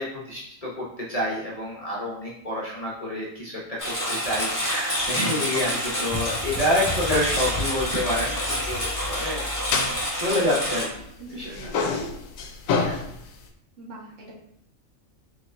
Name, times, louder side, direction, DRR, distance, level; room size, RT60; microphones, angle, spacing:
voice 1, 0.0-9.4 10.2-10.9 11.3-11.5 11.8-12.0 12.8-13.0, left 1 dB, 30° left, -5 dB, 0.9 m, -28 dB
Engine, 3.8-10.8, equal, 15° left, 1.2 m, -28 dB
sound 1, 6.9-11.1 11.4-13.5, left 4 dB, 75° left, 1.0 m, -31 dB
voice 2, 11.2-11.8 13.8-14.4, right 2 dB, 65° right, -3 dB, 1.6 m, -42 dB
4.4 x 4.0 x 2.6 m, 0.79 s
omnidirectional pair, 1.4 m